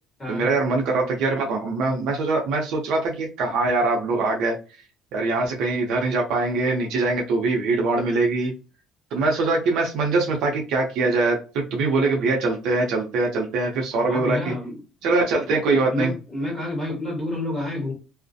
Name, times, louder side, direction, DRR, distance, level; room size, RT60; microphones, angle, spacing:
voice 1, 0.3-4.6 5.1-8.5 9.1-14.5 15.0-16.1, right 3 dB, 60° right, 1 dB, 0.6 m, -23 dB
voice 2, 13.9-14.8 15.9-17.9, left 1 dB, 10° left, -4 dB, 1.4 m, -29 dB
2.4 x 2.1 x 2.6 m, 0.33 s
cardioid pair, 175°, 0 cm